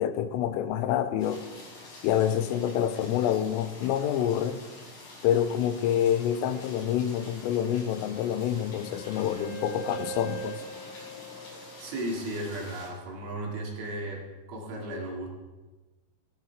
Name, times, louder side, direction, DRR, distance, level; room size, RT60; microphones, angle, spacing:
voice 1, 0.0-1.4 2.0-4.6 5.2-10.6, left 10 dB, 85° left, 10 dB, 3.4 m, -27 dB
sound 1, 1.2-12.9, left 2 dB, 60° left, 6.9 m, -47 dB
Wind instrument woodwind instrument, 7.6-12.5, right 4 dB, 55° right, 8.8 m, -42 dB
voice 2, 11.5-15.3, right 1 dB, 70° right, -1 dB, 5.0 m, -35 dB
18.0 x 15.5 x 4.8 m, 1.2 s
omnidirectional pair, 5.9 m